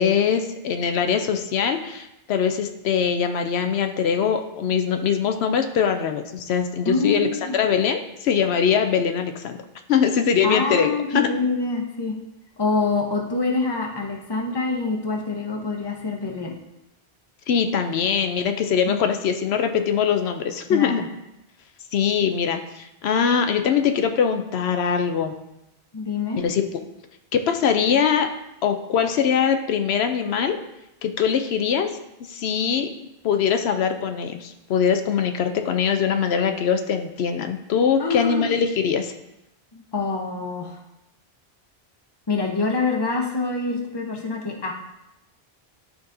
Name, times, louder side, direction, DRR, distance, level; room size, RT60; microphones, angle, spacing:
voice 1, 0.0-7.3 7.5-9.6 9.9-11.3 17.5-21.0 21.9-25.3 26.4-26.6 27.3-28.3 28.6-30.6 31.0-31.9 32.3-32.9 33.2-39.1, left 7 dB, 80° left, 6 dB, 0.8 m, -22 dB
voice 2, 6.9-7.6 10.4-12.2 12.6-16.5 18.9-19.0 20.7-21.0 25.9-26.4 38.0-38.6 39.7-40.8 42.3-44.7, left 3 dB, 25° left, 1 dB, 0.8 m, -26 dB
11.0 x 3.9 x 2.6 m, 0.89 s
omnidirectional pair, 1.1 m